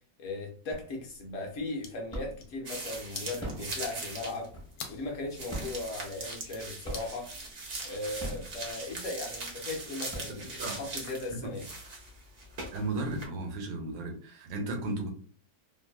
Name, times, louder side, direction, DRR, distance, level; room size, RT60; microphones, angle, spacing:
voice 1, 0.2-4.5 4.9-7.3 7.8-11.6, left 2 dB, 65° left, 1 dB, 0.8 m, -37 dB
sound 1, 0.7-1.2 1.6-2.6 3.2-5.0 5.4-6.5 6.8-7.4 8.0-9.1 9.6-9.7 9.9-10.8, equal, 5° left, 0.4 m, -41 dB
sound 2, 1.5-10.4, left 6 dB, 80° left, 1.2 m, -50 dB
sound 3, 2.7-4.5 4.7-4.8 5.3-13.3, right 3 dB, 65° right, 0.6 m, -41 dB
voice 2, 10.4-10.8 11.3-11.5 12.7-15.1, right 2 dB, 85° right, 2 dB, 1.4 m, -35 dB
3.2 x 2.3 x 2.2 m, 0.44 s
omnidirectional pair, 1.9 m